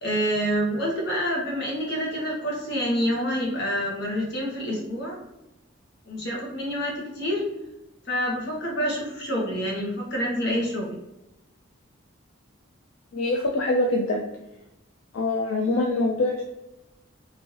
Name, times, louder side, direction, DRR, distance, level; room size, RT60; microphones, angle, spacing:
voice 1, 0.0-5.2 6.1-7.5 8.1-11.0, equal, 55° left, -3 dB, 1.0 m, -27 dB
voice 2, 13.1-14.2 15.1-16.4, left 2 dB, 75° left, 1 dB, 0.4 m, -24 dB
3.0 x 2.6 x 2.8 m, 0.92 s
head